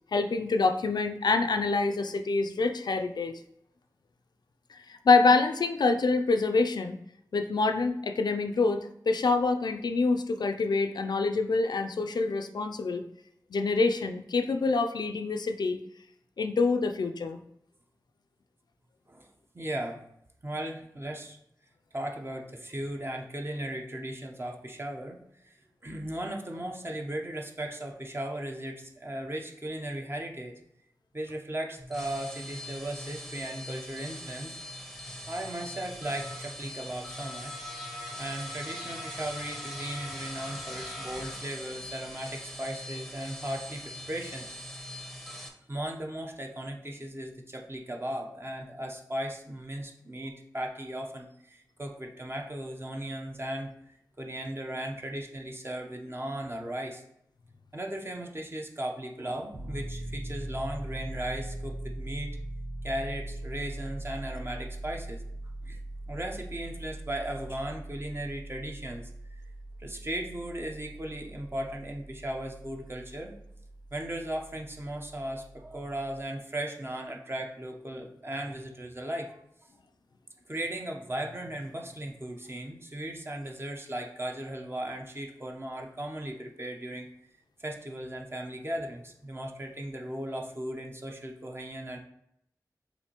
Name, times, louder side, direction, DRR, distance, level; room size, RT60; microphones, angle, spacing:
voice 1, 0.1-3.3 4.7-7.0 7.3-13.0 13.5-15.8 16.4-17.4, left 3 dB, 80° left, 7 dB, 0.3 m, -26 dB
voice 2, 19.5-20.1 20.4-21.4 21.9-25.5 25.8-30.5 31.1-34.6 35.3-37.6 38.2-44.5 45.7-57.0 57.7-62.4 62.8-65.2 65.6-65.8 66.1-69.1 69.8-73.4 73.9-79.4 80.5-87.1 87.6-92.0, right 1 dB, 35° right, 2 dB, 0.7 m, -37 dB
sound 1, 31.8-45.5, left 1 dB, ahead, 0.8 m, -41 dB
Piano, 59.5-76.2, right 1 dB, 50° right, 1.4 m, -41 dB
6.6 x 2.6 x 2.9 m, 0.75 s
wide cardioid pair, 55°, 7 cm